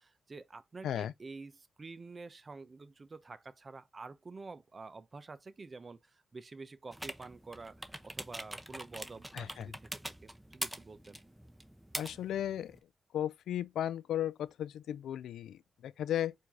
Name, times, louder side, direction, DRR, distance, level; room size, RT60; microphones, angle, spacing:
voice 1, 0.0-11.2, right 3 dB, 45° right, 0.6 m, -49 dB
sound 1, 6.9-12.8, right 1 dB, 10° right, 0.8 m, -44 dB
voice 2, 9.3-9.7 12.0-12.8 13.1-16.3, left 11 dB, 80° left, 0.3 m, -35 dB
4.6 x 2.7 x 3.6 m
supercardioid pair, 45°, 0 cm